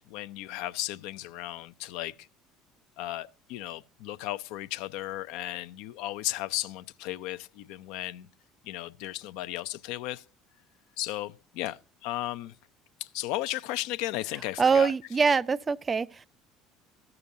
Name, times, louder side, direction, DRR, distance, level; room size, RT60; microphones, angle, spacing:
voice 1, 0.0-2.3 3.0-8.3 8.6-10.2 11.0-12.5 13.0-14.9, left 15 dB, 70° left, 0.4 m, -35 dB
voice 2, 14.6-16.3, right 5 dB, 30° right, 0.4 m, -24 dB
14.5 x 6.8 x 2.6 m
hypercardioid pair, 65°, 0 cm